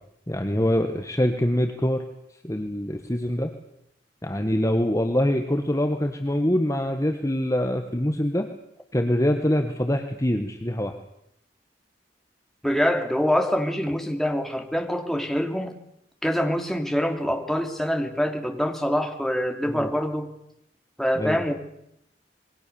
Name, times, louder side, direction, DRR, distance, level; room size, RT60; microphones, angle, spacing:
voice 1, 0.3-2.0 2.4-3.5 4.2-8.5 8.9-11.0 19.7-19.9 21.1-21.4, left 1 dB, 20° left, 5 dB, 1.5 m, -24 dB
voice 2, 12.6-15.7 16.2-20.3 21.0-21.5, equal, ahead, 4 dB, 2.8 m, -25 dB
27.0 x 22.0 x 7.1 m, 0.77 s
head